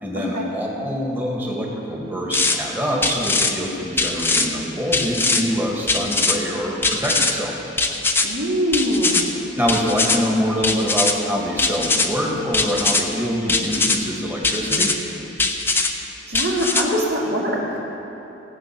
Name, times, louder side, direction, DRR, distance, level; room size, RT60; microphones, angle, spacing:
voice 1, 0.0-7.6 9.6-15.0, equal, 10° right, -2 dB, 2.0 m, -25 dB
sound 1, 2.3-2.6 3.0-3.5 4.0-4.5 4.9-5.4 5.9-6.4 6.8-7.3 7.8-8.3 8.7-9.2 9.7-10.2 10.6-11.1 11.6-12.1 12.5-13.0 13.5-14.0 14.4-14.9 15.4-15.9 16.3-16.8, left 3 dB, 10° left, 0.7 m, -20 dB
voice 2, 8.2-9.3 16.3-17.8, equal, 55° right, -3 dB, 2.4 m, -22 dB
18.0 x 8.0 x 6.2 m, 3.0 s
head